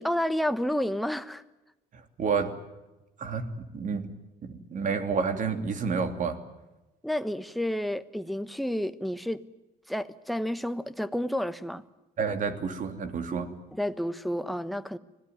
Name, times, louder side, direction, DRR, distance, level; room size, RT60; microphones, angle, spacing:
voice 1, 0.0-1.4 7.0-9.4 9.9-11.8 13.7-15.0, equal, ahead, 1.1 m, -30 dB
voice 2, 1.9-2.6 3.2-4.1 4.4-6.4 12.2-13.5, right 5 dB, 50° right, 2.9 m, -30 dB
26.0 x 18.0 x 9.5 m
cardioid pair, 110°, 17 cm